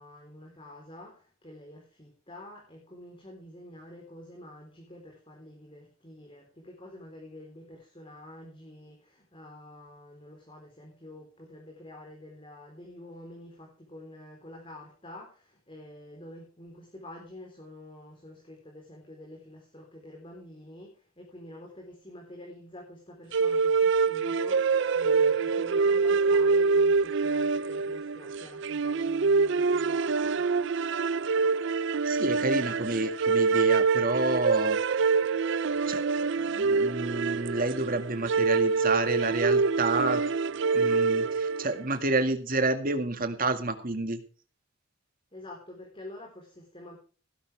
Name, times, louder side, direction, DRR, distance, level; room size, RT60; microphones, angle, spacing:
voice 1, 0.0-30.5 45.3-47.0, left 1 dB, 25° left, 0 dB, 3.9 m, -48 dB
sound 1, 23.3-41.8, right 4 dB, 55° right, 0.5 m, -25 dB
voice 2, 32.1-35.1 35.8-36.0 36.4-40.2 40.7-44.2, right 2 dB, 40° right, 8 dB, 2.0 m, -29 dB
17.0 x 11.5 x 3.4 m, 0.39 s
head